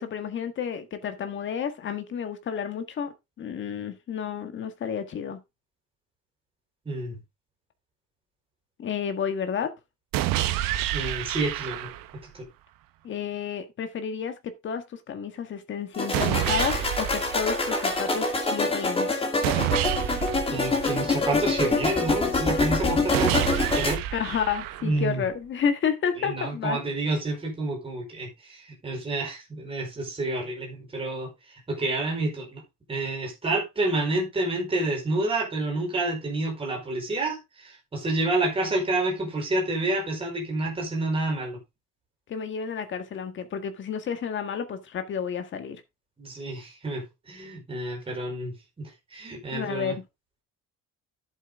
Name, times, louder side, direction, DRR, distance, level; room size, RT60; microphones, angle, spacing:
voice 1, 0.0-5.4 8.8-9.7 13.0-14.3 14.6-19.1 24.1-26.8 42.3-45.8 49.5-49.9, left 7 dB, 35° left, 1.7 m, -31 dB
voice 2, 6.8-7.2 10.9-11.9 12.3-12.5 20.5-23.5 23.8-24.0 24.8-25.2 26.2-31.3 31.7-32.6 32.9-41.6 46.2-50.0, right 2 dB, 15° right, 4.9 m, -29 dB
sound 1, 10.1-12.2 16.1-18.1 19.4-21.4 23.1-25.1, right 13 dB, 75° right, 1.3 m, -29 dB
sound 2, 15.9-23.9, left 3 dB, 15° left, 2.2 m, -26 dB
11.0 x 8.0 x 3.7 m
cardioid pair, 180°, 33 cm